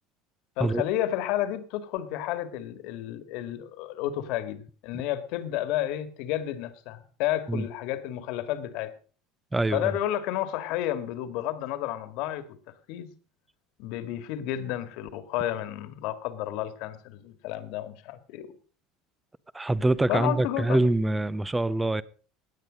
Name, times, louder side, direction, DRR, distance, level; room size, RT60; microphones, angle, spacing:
voice 1, 0.6-8.9 9.7-12.4 12.9-13.1 13.8-18.5 20.1-20.8, left 12 dB, 60° left, 1.9 m, -31 dB
voice 2, 9.5-9.9 19.5-22.0, right 2 dB, 10° right, 0.6 m, -25 dB
17.5 x 10.0 x 5.2 m
cardioid pair, 160°, 0 cm